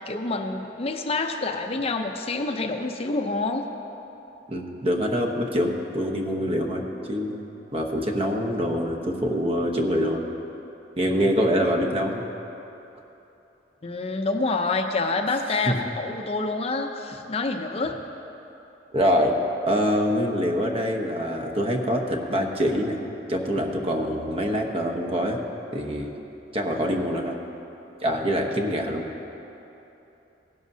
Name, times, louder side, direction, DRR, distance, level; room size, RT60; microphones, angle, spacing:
voice 1, 0.0-3.6 13.8-18.0, left 3 dB, 35° left, 5 dB, 0.6 m, -27 dB
voice 2, 4.5-7.4 7.7-10.2 11.0-12.2 15.7-15.8 18.9-19.4 19.7-23.0 23.3-25.4 25.7-26.2 26.5-27.3 28.0-29.0, equal, 35° right, 2 dB, 1.0 m, -25 dB
18.0 x 11.0 x 2.7 m, 3.0 s
head